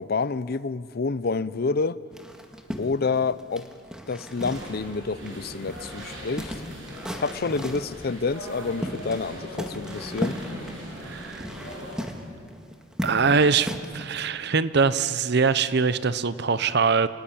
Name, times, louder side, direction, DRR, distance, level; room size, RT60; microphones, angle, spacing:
voice 1, 0.0-2.0 2.8-3.7 4.1-6.5 7.2-10.4, left 4 dB, 55° left, 0.6 m, -28 dB
sound 1, 2.1-5.0 5.2-5.3 5.7-7.9 8.5-9.3 9.5-14.0, equal, 5° right, 1.9 m, -35 dB
sound 2, 4.3-12.0, equal, 80° right, 7.5 m, -40 dB
voice 2, 11.0-11.5 13.0-17.1, right 5 dB, 60° right, 0.8 m, -23 dB
27.5 x 20.0 x 8.7 m
head